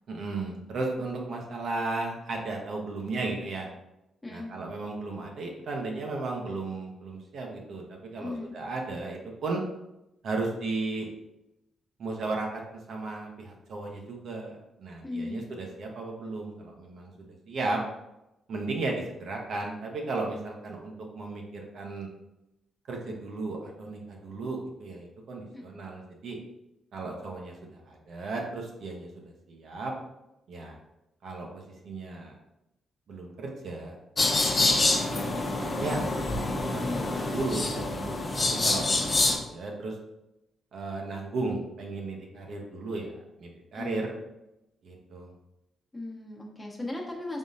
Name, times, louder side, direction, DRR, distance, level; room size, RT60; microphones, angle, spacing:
voice 1, 0.1-3.7 4.3-9.6 10.2-11.1 12.0-12.6 12.9-17.1 17.5-17.8 18.5-22.1 22.9-26.4 26.9-27.5 27.9-29.1 29.5-29.9 30.5-30.8 31.2-32.3 33.1-34.0 34.6-34.8 35.6-36.1 36.6-36.8 37.2-39.9 40.7-43.1 43.4-44.1 44.8-45.3, right 3 dB, 70° right, 0 dB, 0.8 m, -35 dB
voice 2, 8.2-8.6 15.0-15.5 25.5-25.6 36.8-37.1 43.7-44.1 45.9-47.4, left 2 dB, 20° left, -1 dB, 1.0 m, -37 dB
sound 1, 34.2-39.4, left 2 dB, 35° left, 0.6 m, -26 dB
3.6 x 3.6 x 2.6 m, 0.90 s
supercardioid pair, 65°, 0 cm